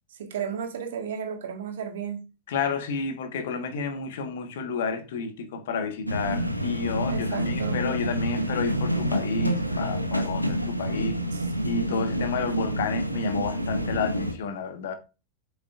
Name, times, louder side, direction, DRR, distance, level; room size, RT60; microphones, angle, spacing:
voice 1, 0.1-2.2 7.1-7.8 11.3-11.5 11.9-12.1, right 7 dB, 60° right, 1.7 m, -34 dB
voice 2, 2.5-11.2 11.6-15.0, left 5 dB, 55° left, 1.3 m, -30 dB
sound 1, 6.1-14.3, equal, 90° left, 0.9 m, -28 dB
7.9 x 7.0 x 2.5 m
figure-of-eight pair, 90°, 0 cm